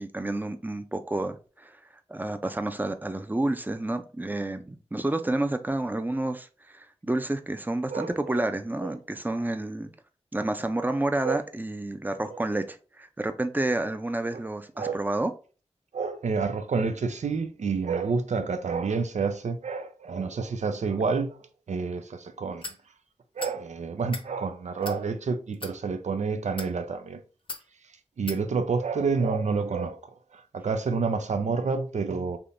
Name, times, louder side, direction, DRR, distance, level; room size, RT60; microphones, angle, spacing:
voice 1, 0.0-1.7 2.1-6.5 6.7-9.9 10.3-15.3, right 2 dB, 15° right, 0.5 m, -29 dB
voice 2, 7.9-8.4 8.8-8.9 11.2-11.4 12.3-12.4 14.3-14.4 14.8-15.0 15.9-22.7 23.4-27.2 28.2-30.0 30.3-32.4, right 4 dB, 85° right, 0.4 m, -29 dB
sound 1, 22.6-22.8 23.4-23.6 24.0-24.3 24.8-25.0 25.5-25.7 26.4-26.7 27.5-27.6 28.3-28.4, left 2 dB, 50° left, 0.6 m, -38 dB
3.4 x 2.8 x 2.6 m
cardioid pair, 40°, 12 cm